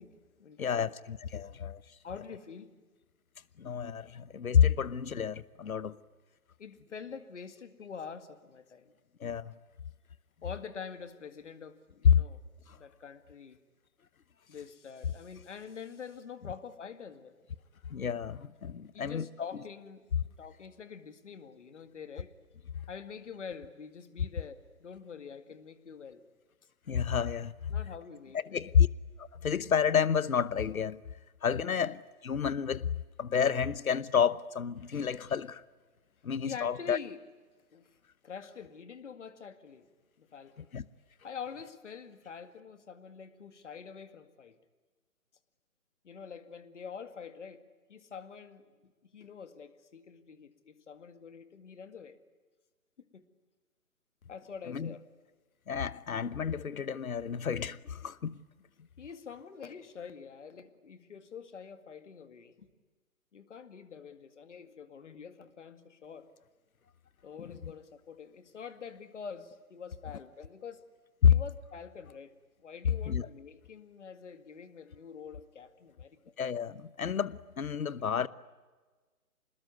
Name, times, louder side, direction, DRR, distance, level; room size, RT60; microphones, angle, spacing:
voice 1, 0.0-0.9 2.0-2.8 5.9-6.0 6.6-8.9 10.4-12.4 12.7-13.6 14.5-17.4 18.9-20.1 20.4-22.4 22.9-26.2 27.7-28.6 36.4-37.2 37.7-38.0 38.2-39.9 40.2-40.7 41.2-44.6 46.0-48.7 49.1-52.2 53.0-53.3 54.3-55.0 59.0-62.7 63.3-66.3 67.2-70.9 71.3-72.3 72.6-76.3 78.1-78.3, left 6 dB, 55° left, 2.2 m, -46 dB
voice 2, 0.6-1.8 3.6-5.9 9.2-9.5 12.0-12.2 12.7-12.8 17.9-19.3 26.9-27.7 28.5-28.9 29.2-31.0 31.4-32.9 33.2-35.6 36.2-37.0 40.7-40.8 54.7-54.9 55.7-58.4 67.6-67.7 71.2-71.3 73.1-73.3 76.4-78.3, left 7 dB, 70° left, 1.1 m, -29 dB
26.5 x 20.5 x 9.6 m
figure-of-eight pair, 145°, 44 cm